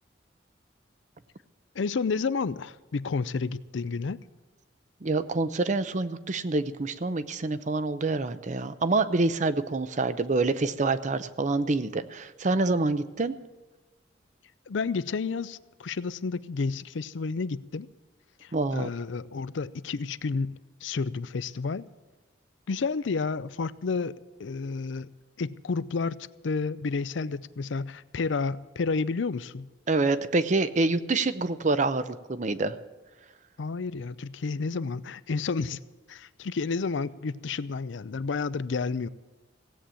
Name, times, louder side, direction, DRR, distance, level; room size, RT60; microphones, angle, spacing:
voice 1, 1.8-4.2 14.7-17.9 18.4-21.9 22.7-25.1 25.4-26.2 26.4-29.7 33.6-35.8 36.1-39.1, left 4 dB, 75° left, 0.5 m, -31 dB
voice 2, 5.0-13.3 18.5-18.9 29.9-32.8, right 3 dB, 40° right, 0.6 m, -26 dB
17.0 x 8.5 x 7.6 m
head